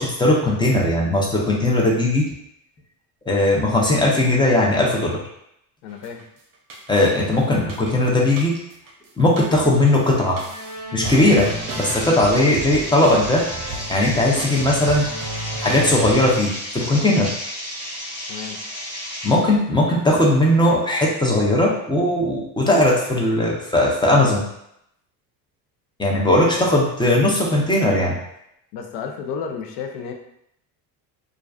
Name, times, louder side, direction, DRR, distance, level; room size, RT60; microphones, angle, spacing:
voice 1, 0.0-2.3 3.3-5.2 6.9-8.6 9.2-10.4 10.9-13.5 13.9-15.1 15.6-17.3 19.2-24.4 26.0-28.2, left 1 dB, 10° left, -3 dB, 0.4 m, -18 dB
voice 2, 5.8-6.2 11.9-12.2 18.3-18.6 28.7-30.1, left 6 dB, 75° left, 3 dB, 0.6 m, -32 dB
sound 1, 6.0-6.2 6.7-7.2 7.5-8.9 9.2-16.3, right 2 dB, 45° right, 0.6 m, -32 dB
sound 2, 11.1-19.3, equal, 10° right, 0.9 m, -33 dB
2.4 x 2.3 x 2.3 m, 0.76 s
hypercardioid pair, 80°, 49 cm